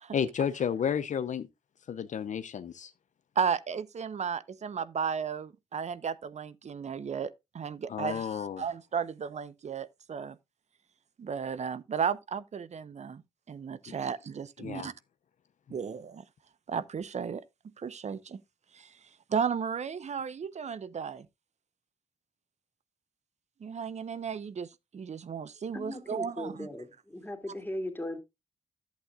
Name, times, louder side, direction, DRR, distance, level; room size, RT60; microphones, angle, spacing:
voice 1, 0.1-1.5 1.9-2.9 7.9-8.6 13.9-14.0 14.6-14.9, left 8 dB, 60° left, 0.6 m, -32 dB
voice 2, 3.4-10.4 11.2-13.2 13.5-14.9 15.7-16.2 16.7-17.4 17.8-18.4 18.7-18.9 19.3-21.3 23.6-26.7, right 6 dB, 50° right, 0.8 m, -34 dB
voice 3, 25.7-28.2, left 1 dB, 15° left, 2.5 m, -38 dB
11.5 x 8.1 x 2.4 m
supercardioid pair, 45°, 14 cm